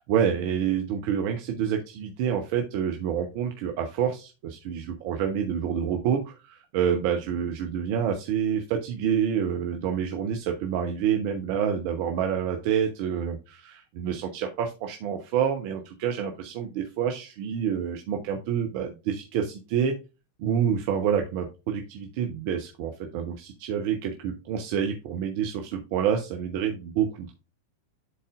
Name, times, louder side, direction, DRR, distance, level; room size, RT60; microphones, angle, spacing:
voice 1, 0.1-19.9 20.4-27.3, right 8 dB, 45° right, 4 dB, 0.9 m, -28 dB
11.0 x 4.1 x 2.5 m, 0.29 s
figure-of-eight pair, 90°, 0 cm